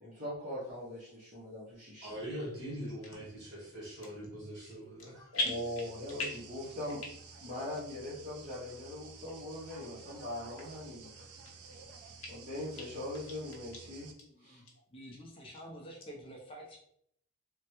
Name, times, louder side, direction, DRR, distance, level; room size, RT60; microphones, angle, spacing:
voice 1, 0.0-2.2 5.3-7.0 7.4-11.1 12.3-14.1 14.4-14.6, left 1 dB, 35° right, -8 dB, 0.7 m, -41 dB
voice 2, 2.0-5.3, equal, 55° right, -4 dB, 1.3 m, -42 dB
sound 1, 3.0-3.2 3.8-4.3 4.6-5.1 5.3-6.5 6.9-7.4 7.8-7.9 8.5-8.6 9.3-9.4 10.1-10.2 10.6-10.7 11.1-11.8 12.2-12.3 12.8-12.9 13.1-13.8 14.2-14.3 14.6-14.7 15.1-15.6 16.0-16.1, left 2 dB, 65° left, 0.8 m, -39 dB
sound 2, 5.5-14.1, right 5 dB, 80° right, 0.5 m, -52 dB
voice 3, 14.1-14.7 14.9-16.8, equal, 25° left, -1 dB, 0.5 m, -49 dB
3.3 x 2.1 x 2.9 m, 0.71 s
head